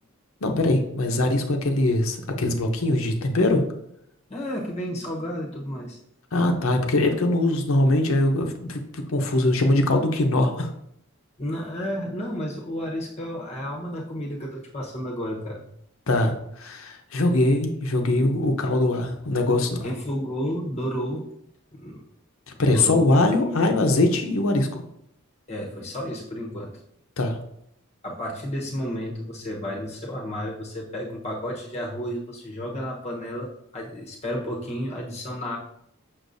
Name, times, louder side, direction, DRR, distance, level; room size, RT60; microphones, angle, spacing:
voice 1, 0.4-3.6 6.3-10.7 16.1-19.9 22.6-24.7 27.2-27.4, left 2 dB, 75° left, 4 dB, 0.8 m, -22 dB
voice 2, 4.3-6.0 11.4-15.7 19.8-21.3 21.7-22.0 22.7-23.7 25.5-26.7 28.0-35.6, equal, 30° left, -3 dB, 0.9 m, -32 dB
6.3 x 6.0 x 2.6 m, 0.74 s
head